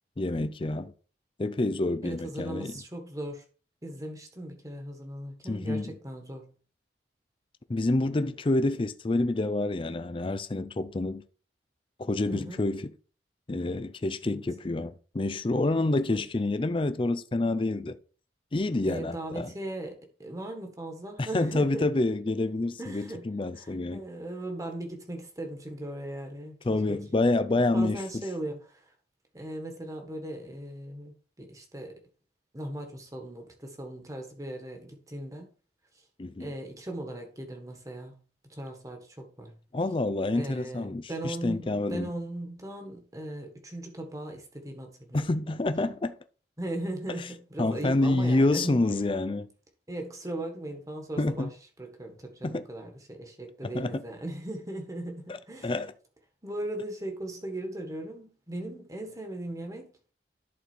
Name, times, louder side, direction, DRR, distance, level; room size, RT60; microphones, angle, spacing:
voice 1, 0.2-0.9 1.4-2.7 5.5-5.9 7.7-11.2 12.0-12.9 13.5-18.0 18.5-19.5 21.2-24.0 26.6-28.2 36.2-36.5 39.7-42.1 45.1-46.1 47.6-49.5 51.2-51.5 52.4-52.6 53.7-54.0 55.6-55.9, left 2 dB, 30° left, 0.5 m, -28 dB
voice 2, 2.0-3.4 3.8-6.5 12.3-12.7 14.2-14.4 16.1-16.2 18.8-21.9 22.3-22.4 22.8-27.0 27.5-28.9 29.3-32.0 32.5-35.5 36.4-38.2 38.5-39.6 40.3-45.3 46.6-48.8 49.9-51.5 51.8-55.8 56.4-59.9, right 1 dB, 20° right, 1.5 m, -38 dB
11.0 x 4.2 x 4.5 m
head